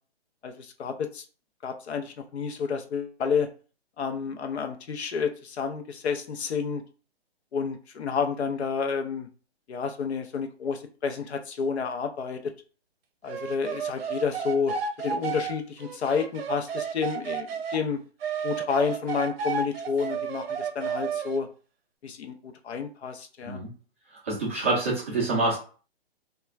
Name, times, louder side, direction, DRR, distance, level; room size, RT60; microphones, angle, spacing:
voice 1, 0.4-1.2 1.6-3.5 4.0-6.8 7.5-9.3 9.7-12.5 13.2-17.5 17.7-18.0 18.4-21.5 22.0-23.6, left 6 dB, 80° left, 6 dB, 0.6 m, -30 dB
sound 1, 13.3-17.8 18.2-21.4, right 6 dB, 65° right, 0.6 m, -32 dB
voice 2, 24.2-25.6, right 2 dB, 15° right, -6 dB, 0.4 m, -26 dB
2.3 x 2.3 x 3.0 m, 0.37 s
hypercardioid pair, 150°, 32 cm